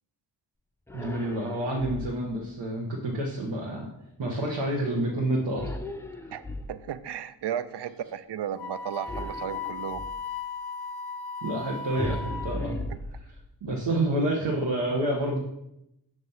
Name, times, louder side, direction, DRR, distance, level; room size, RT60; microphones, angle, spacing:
sound 1, 0.9-2.4 5.6-7.1 9.1-10.3 12.0-13.7, left 1 dB, 5° left, 0.4 m, -37 dB
voice 1, 0.9-3.9 4.2-5.7 6.2-6.3 11.4-12.8 13.2-13.3 13.6-15.4, right 1 dB, 85° right, -2 dB, 1.1 m, -28 dB
voice 2, 6.7-10.0, right 9 dB, 65° right, 13 dB, 0.5 m, -34 dB
Wind instrument woodwind instrument, 8.6-12.7, left 4 dB, 60° left, 0.7 m, -37 dB
6.6 x 3.1 x 5.5 m, 0.82 s
cardioid pair, 65°, 44 cm